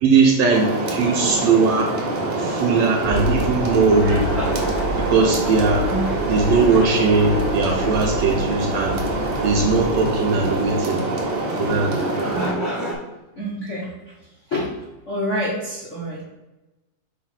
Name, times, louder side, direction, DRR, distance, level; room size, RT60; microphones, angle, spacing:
voice 1, 0.0-1.9 2.4-4.3 5.0-5.9 6.3-9.1 9.4-11.0 11.6-12.1, right 4 dB, 75° right, 0 dB, 1.6 m, -19 dB
sound 1, 0.5-12.5, right 2 dB, 50° right, 1.6 m, -25 dB
sound 2, 1.4-12.9, equal, 25° right, 1.1 m, -32 dB
sound 3, 3.0-11.3, left 1 dB, 55° left, 2.7 m, -31 dB
voice 2, 5.8-6.3 12.3-12.6 13.3-14.1 14.5-14.7 15.0-16.2, equal, 75° left, -6 dB, 0.6 m, -27 dB
6.4 x 3.1 x 5.7 m, 1.0 s
omnidirectional pair, 3.7 m